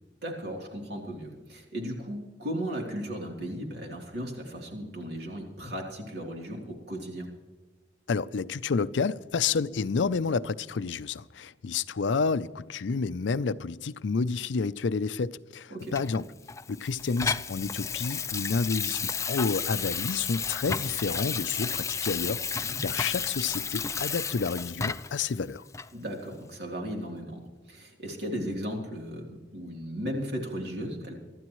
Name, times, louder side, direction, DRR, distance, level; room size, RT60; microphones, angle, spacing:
voice 1, 0.2-7.3 15.7-16.0 22.5-22.8 25.9-31.2, equal, 60° right, 3.2 m, -36 dB
voice 2, 8.1-16.2 16.7-25.6, left 5 dB, 90° left, 0.5 m, -30 dB
Water tap faucet / Sink (filling or washing), 15.9-25.2 25.7-25.9, left 6 dB, 15° left, 0.4 m, -32 dB
25.0 x 12.5 x 3.1 m
head